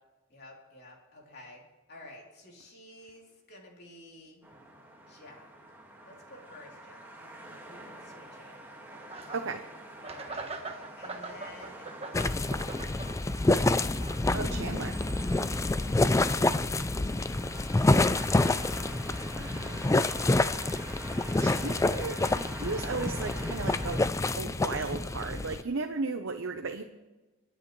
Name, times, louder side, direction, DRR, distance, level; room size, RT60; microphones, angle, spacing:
voice 1, 0.3-1.6 1.9-4.4 5.1-5.5 6.0-8.6 10.1-10.5 11.0-13.3, left 1 dB, 55° left, -1 dB, 3.3 m, -52 dB
sound 1, 4.4-24.1, right 1 dB, 10° right, 1.9 m, -46 dB
sound 2, 9.1-9.6 10.0-14.9, right 3 dB, 30° right, 1.2 m, -42 dB
voice 2, 9.3-9.7 14.3-15.0 19.3-20.2 21.4-26.8, right 4 dB, 90° right, 5 dB, 0.8 m, -36 dB
sound 3, 12.1-25.6, left 2 dB, 15° left, 0.4 m, -27 dB
30.0 x 10.0 x 3.2 m, 1.2 s
head